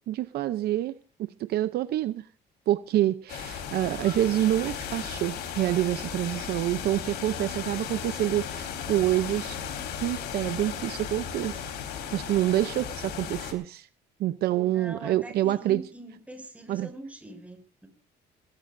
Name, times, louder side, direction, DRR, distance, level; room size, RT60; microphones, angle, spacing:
voice 1, 0.1-2.3 2.7-9.6 10.0-11.7 12.1-13.9 14.2-15.8 16.7-16.9, right 14 dB, 70° right, 13 dB, 0.7 m, -27 dB
sound 1, 3.3-13.5, left 8 dB, 75° left, 3.9 m, -36 dB
voice 2, 14.5-17.9, right 1 dB, 10° right, 4 dB, 6.2 m, -43 dB
20.5 x 18.0 x 2.6 m, 0.38 s
cardioid pair, 110°, 17 cm